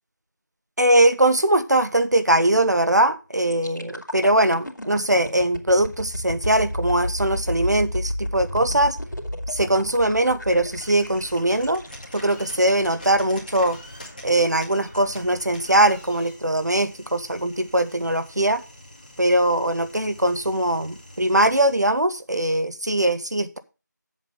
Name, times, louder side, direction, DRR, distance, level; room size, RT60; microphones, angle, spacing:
voice 1, 0.8-9.0 9.5-11.8 12.1-13.8 14.2-18.6 19.2-23.6, right 1 dB, 60° right, 11 dB, 1.2 m, -21 dB
sound 1, 3.5-13.3 13.8-14.0, equal, 75° left, 2.6 m, -32 dB
sound 2, 10.7-21.8, left 1 dB, 25° left, 2.1 m, -44 dB
7.7 x 7.3 x 5.1 m, 0.30 s
figure-of-eight pair, 175°, 10 cm